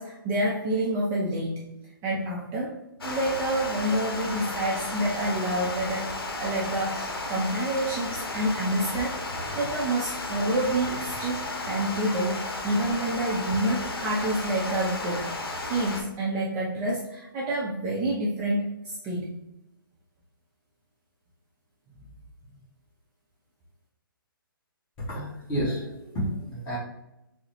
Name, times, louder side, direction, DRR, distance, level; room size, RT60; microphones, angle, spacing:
voice 1, 0.0-1.6 2.0-2.8 3.0-6.1 6.4-11.4 11.7-19.3, right 1 dB, 20° right, -5 dB, 0.4 m, -28 dB
Water, 3.0-16.0, left 2 dB, 90° left, 0.7 m, -33 dB
voice 2, 25.1-26.8, equal, 20° left, -6 dB, 1.2 m, -30 dB
3.6 x 2.1 x 2.8 m, 0.90 s
hypercardioid pair, 150°, 12 cm